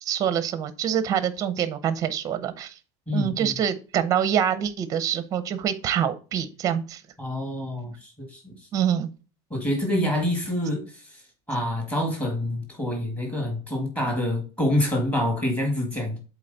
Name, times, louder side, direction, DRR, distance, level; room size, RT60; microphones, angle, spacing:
voice 1, 0.0-2.7 3.1-7.0 8.7-9.1, right 9 dB, 25° right, 0.6 m, -25 dB
voice 2, 3.1-3.5 7.2-8.7 9.5-11.2 11.5-16.2, left 1 dB, 10° left, 1.8 m, -27 dB
7.7 x 4.1 x 3.9 m
cardioid pair, 170°, 15 cm